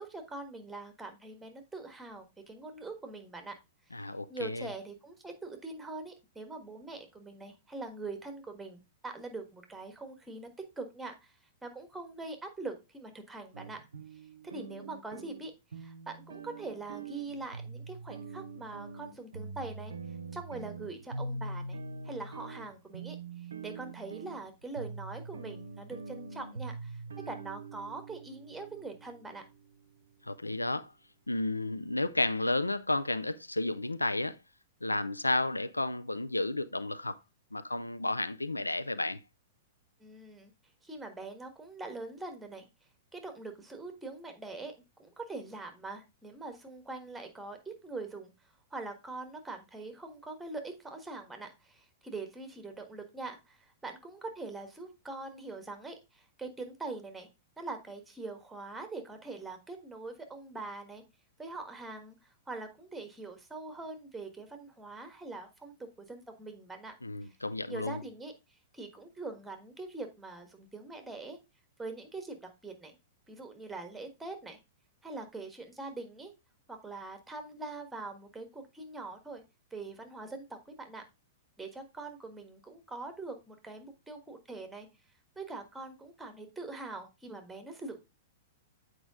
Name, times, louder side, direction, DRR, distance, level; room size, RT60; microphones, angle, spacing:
voice 1, 0.0-3.5 4.3-10.5 10.8-11.3 11.6-13.8 14.4-15.5 15.8-19.9 20.3-21.8 22.0-29.4 40.0-40.5 40.8-42.7 43.1-44.7 45.0-48.3 48.7-57.3 57.6-61.0 61.4-66.9 67.2-67.3 67.7-68.3 68.7-71.4 71.8-72.9 73.3-74.6 75.0-76.3 76.7-79.4 79.7-81.0 81.6-84.9 85.3-88.0, right 3 dB, 5° right, 1.5 m, -43 dB
voice 2, 3.9-4.7 30.2-30.9 31.3-34.4 34.8-37.2 37.5-39.2 67.0-68.0, left 2 dB, 85° left, 0.4 m, -32 dB
sound 1, 13.5-29.8, right 3 dB, 70° right, 0.6 m, -43 dB
7.9 x 4.7 x 3.6 m
figure-of-eight pair, 105°, 0 cm